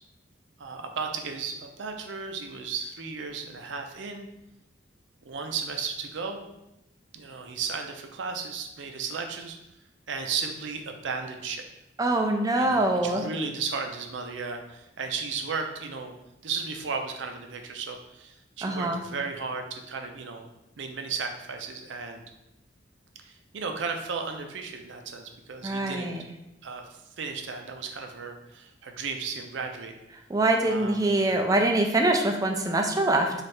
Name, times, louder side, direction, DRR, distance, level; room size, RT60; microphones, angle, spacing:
voice 1, 0.6-4.3 5.2-6.5 7.1-9.6 10.1-11.6 12.6-16.1 16.4-20.5 20.8-22.2 23.2-26.1 26.6-29.9 30.6-31.2, right 5 dB, 80° right, 5 dB, 0.5 m, -35 dB
voice 2, 12.0-13.2 18.6-19.0 25.6-26.2 30.3-33.3, right 2 dB, 20° right, 3 dB, 0.3 m, -24 dB
3.2 x 2.4 x 4.3 m, 0.90 s
head